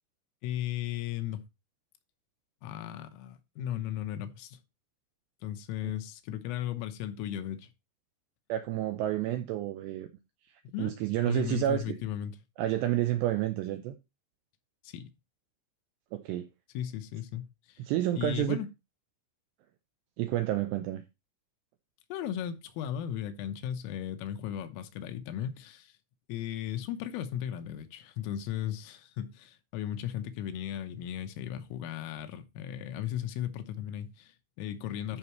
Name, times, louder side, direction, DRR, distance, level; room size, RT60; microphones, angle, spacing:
voice 1, 0.4-1.4 2.6-4.6 5.4-7.7 10.7-10.9 11.3-12.3 14.8-15.1 16.8-17.9 18.2-18.7 22.1-25.9 26.3-35.2, left 11 dB, 85° left, 3.6 m, -36 dB
voice 2, 8.5-10.1 10.8-12.0 12.6-14.0 16.1-16.5 17.8-18.6 20.2-21.0, right 13 dB, 85° right, 2.4 m, -29 dB
13.5 x 5.7 x 3.1 m
omnidirectional pair, 5.7 m